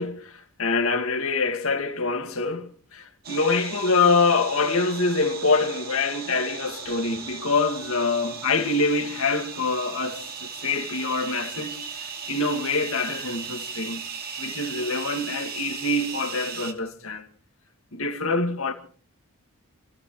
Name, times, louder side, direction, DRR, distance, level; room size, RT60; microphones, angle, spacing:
voice 1, 0.0-14.0 14.4-17.3 17.9-18.7, left 3 dB, 65° left, 2.2 m, -25 dB
sound 1, 3.2-16.7, right 6 dB, 45° right, 2.0 m, -37 dB
28.5 x 15.0 x 3.3 m
head